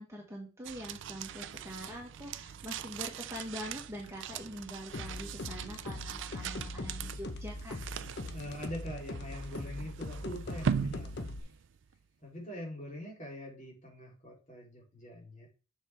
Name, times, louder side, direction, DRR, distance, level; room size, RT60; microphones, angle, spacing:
voice 1, 0.0-7.7, equal, 15° right, -1 dB, 1.5 m, -44 dB
sound 1, 0.6-12.0, right 7 dB, 60° right, 0.4 m, -40 dB
sound 2, 4.9-11.4, left 2 dB, 55° left, 0.8 m, -41 dB
voice 2, 8.3-11.5 12.2-15.5, left 1 dB, 35° left, -2 dB, 3.4 m, -43 dB
7.2 x 5.9 x 3.4 m, 0.33 s
head